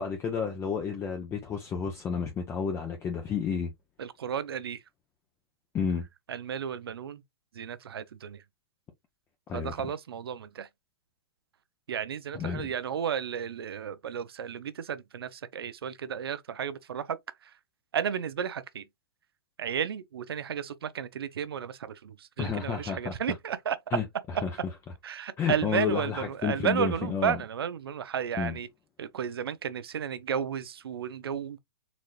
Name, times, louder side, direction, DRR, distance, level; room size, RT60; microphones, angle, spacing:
voice 1, 0.0-3.7 5.7-6.0 9.5-9.7 12.3-12.7 22.4-23.1 23.9-24.0 24.4-24.5 25.4-27.4 28.4-28.5, left 6 dB, 20° left, 0.7 m, -31 dB
voice 2, 4.0-4.8 6.3-7.2 7.5-8.4 9.5-10.7 11.9-17.5 17.9-18.9 19.6-23.8 25.0-28.7 29.0-31.6, right 8 dB, 80° right, 0.6 m, -33 dB
4.0 x 3.1 x 2.4 m
hypercardioid pair, 125°, 13 cm